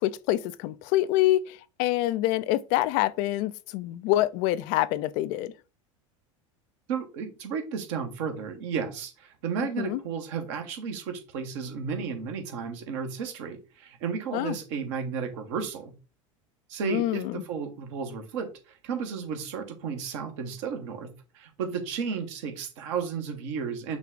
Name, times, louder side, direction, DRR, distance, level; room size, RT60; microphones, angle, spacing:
voice 1, 0.0-5.5 9.8-10.0 14.3-14.5 16.8-17.4, left 15 dB, 55° left, 0.4 m, -26 dB
voice 2, 6.9-15.9 16.7-21.1 21.3-24.0, right 6 dB, 65° right, 1.2 m, -33 dB
5.9 x 2.4 x 3.7 m
hypercardioid pair, 85°, 17 cm